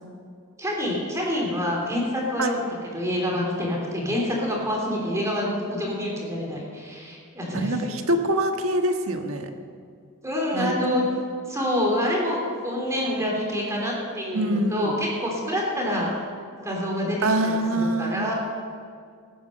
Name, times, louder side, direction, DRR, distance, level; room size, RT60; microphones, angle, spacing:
voice 1, 0.6-2.6 2.9-7.8 10.2-11.0 11.5-16.1 16.6-18.3, equal, 15° right, -2 dB, 3.3 m, -27 dB
voice 2, 7.5-9.5 10.5-10.7 14.3-14.9 17.2-18.3, right 1 dB, 65° right, 4 dB, 1.5 m, -24 dB
20.0 x 10.0 x 6.6 m, 2.2 s
head